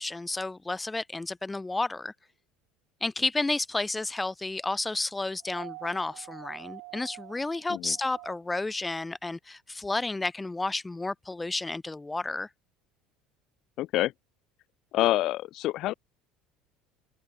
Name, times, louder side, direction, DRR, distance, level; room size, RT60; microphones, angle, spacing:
voice 1, 0.0-2.1 3.0-12.5, left 2 dB, 10° left, 1.2 m, -31 dB
sound 1, 5.4-8.7 10.1-10.2, right 40 dB or more, 75° right, 2.5 m, -47 dB
voice 2, 13.8-14.1 14.9-15.9, left 16 dB, 60° left, 0.9 m, -27 dB
open air
supercardioid pair, 115°, 0 cm